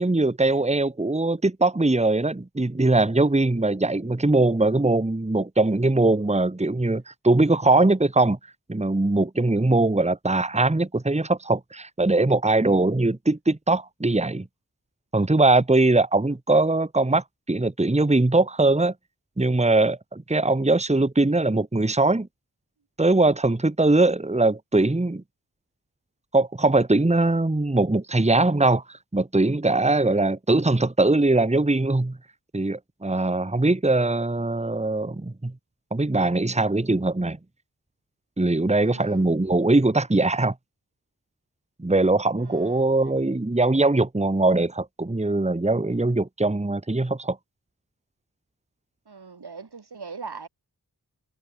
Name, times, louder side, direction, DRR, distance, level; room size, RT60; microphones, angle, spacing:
voice 1, 0.0-8.4 8.7-14.5 15.1-18.9 19.4-22.3 23.0-25.2 26.3-32.2 32.5-35.5 35.9-37.4 38.4-40.5 41.8-47.4, right 2 dB, 15° right, 1.3 m, -21 dB
voice 2, 38.8-39.3 42.4-43.0 49.1-50.5, right 5 dB, 75° right, 2.3 m, -40 dB
wide cardioid pair, 60°, 39 cm